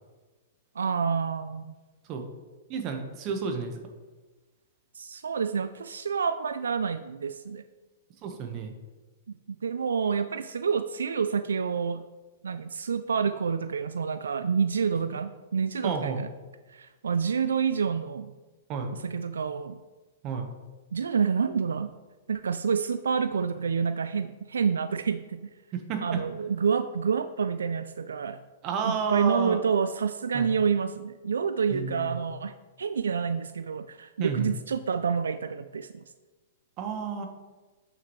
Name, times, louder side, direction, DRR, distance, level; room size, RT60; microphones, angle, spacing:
voice 1, 0.8-1.7 4.9-7.6 9.3-9.4 9.6-12.0 12.4-16.3 16.7-18.3 18.9-19.8 20.9-21.9 22.3-25.5 26.0-28.4 28.9-32.5 32.8-36.0, right 6 dB, 90° right, 11 dB, 0.3 m, -28 dB
voice 2, 2.7-3.8 8.2-8.7 15.8-16.2 18.7-18.9 20.2-20.5 25.7-26.2 28.6-29.6 30.3-30.5 31.7-32.2 34.2-34.5 36.8-37.3, right 5 dB, 35° right, 5 dB, 1.2 m, -31 dB
7.9 x 6.3 x 3.2 m, 1.2 s
hypercardioid pair, 130°, 0 cm